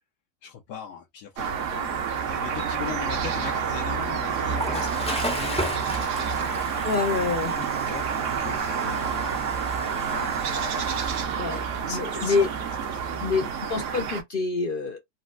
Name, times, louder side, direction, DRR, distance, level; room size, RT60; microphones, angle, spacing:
voice 1, 0.4-7.1 7.6-12.5 12.9-13.0, left 8 dB, 85° left, 1.2 m, -40 dB
sound 1, 1.4-14.2, right 6 dB, 60° right, 0.9 m, -28 dB
Water / Toilet flush, 2.9-11.2, left 1 dB, 10° left, 0.4 m, -37 dB
voice 2, 6.8-7.5 11.4-12.5 13.2-15.0, left 4 dB, 70° left, 0.5 m, -26 dB
4.2 x 2.0 x 2.4 m
omnidirectional pair, 1.6 m